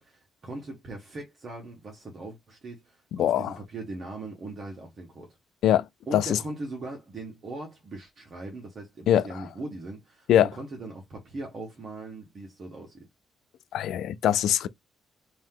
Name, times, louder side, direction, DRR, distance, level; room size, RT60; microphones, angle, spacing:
voice 1, 0.0-5.4 6.1-13.1, right 2 dB, 45° right, 1.3 m, -40 dB
voice 2, 3.2-3.5 5.6-5.9 6.1-6.4 9.1-9.3 10.3-10.5 13.7-14.7, left 11 dB, 80° left, 0.4 m, -22 dB
3.0 x 2.8 x 3.8 m
cardioid pair, 90°, 0 cm